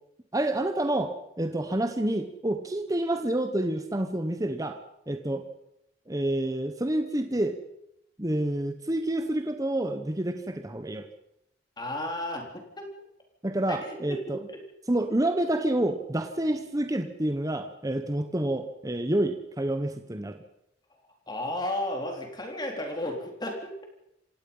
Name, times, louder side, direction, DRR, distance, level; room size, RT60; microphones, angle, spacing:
voice 1, 0.3-4.8 5.1-5.4 6.1-7.6 8.2-11.1 13.4-14.4 14.9-20.4, right 1 dB, 20° right, 7 dB, 1.0 m, -28 dB
voice 2, 11.8-12.9 13.7-14.4 21.3-23.7, left 1 dB, 25° left, 2 dB, 3.9 m, -33 dB
27.0 x 17.5 x 5.6 m, 0.80 s
head